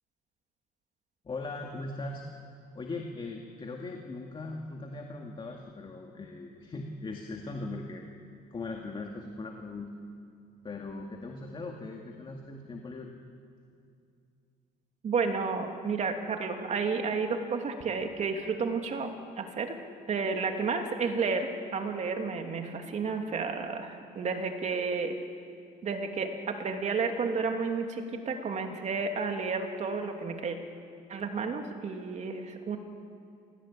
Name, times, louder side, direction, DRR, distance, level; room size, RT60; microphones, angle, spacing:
voice 1, 1.2-2.2 2.7-8.0 8.5-9.9 10.6-13.1, left 3 dB, 30° left, 2 dB, 2.3 m, -39 dB
voice 2, 15.0-19.1 19.4-19.8 20.1-25.2 25.8-30.6 31.1-32.8, right 4 dB, 45° right, 4 dB, 2.9 m, -31 dB
27.0 x 18.5 x 8.7 m, 2.4 s
cardioid pair, 110°, 17 cm